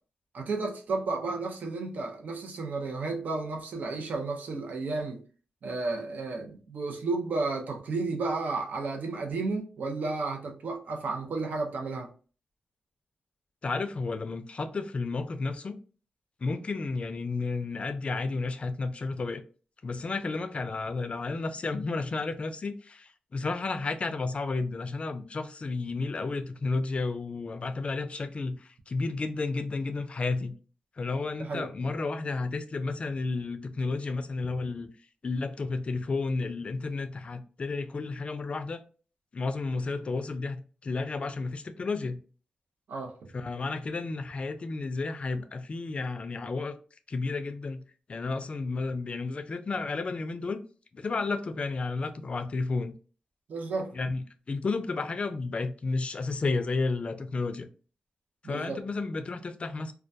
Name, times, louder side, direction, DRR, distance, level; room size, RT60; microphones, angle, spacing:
voice 1, 0.3-5.2 5.6-12.1 31.4-31.7 42.9-43.1 53.5-53.9 58.4-58.8, right 3 dB, 75° right, 0.5 m, -32 dB
voice 2, 13.6-15.8 16.4-19.4 19.8-30.6 31.0-34.9 35.2-38.8 39.3-42.2 43.3-46.8 47.1-47.8 48.1-50.6 50.9-52.9 53.9-57.7 58.4-59.9, left 3 dB, 45° left, 0.3 m, -32 dB
2.2 x 2.2 x 2.6 m
cardioid pair, 75°, 3 cm